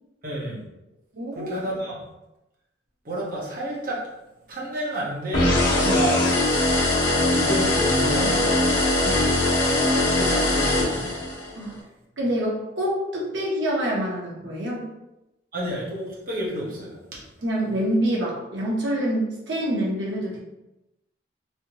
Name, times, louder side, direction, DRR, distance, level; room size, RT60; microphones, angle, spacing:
voice 1, 0.2-0.7 1.3-1.9 3.0-4.0 4.5-6.1 7.3-8.7 10.1-11.2 15.5-17.2, equal, 50° right, -5 dB, 1.0 m, -30 dB
voice 2, 1.1-1.6 5.8-6.0 8.2-8.3 9.0-9.3 11.6-11.8 12.2-14.9 17.4-20.4, equal, 75° right, -4 dB, 1.0 m, -26 dB
sound 1, 5.3-11.5, left 1 dB, 75° left, 0.9 m, -21 dB
3.2 x 2.8 x 2.9 m, 0.95 s
head